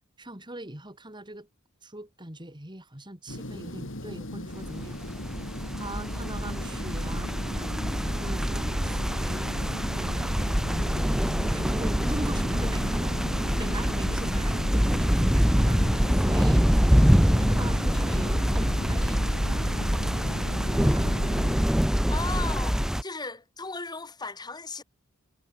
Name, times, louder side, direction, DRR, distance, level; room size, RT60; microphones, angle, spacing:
voice 1, 0.2-1.5 1.8-5.1 5.8-7.7 8.1-9.5 9.9-10.4 11.5-16.7 17.4-21.2 22.3-22.6, right 1 dB, 20° right, 4.4 m, -42 dB
sound 1, 3.3-21.6, left 1 dB, 65° left, 4.5 m, -38 dB
sound 2, 4.6-23.0, equal, ahead, 0.6 m, -25 dB
voice 2, 22.1-22.7 23.0-24.8, left 3 dB, 20° left, 1.9 m, -36 dB
head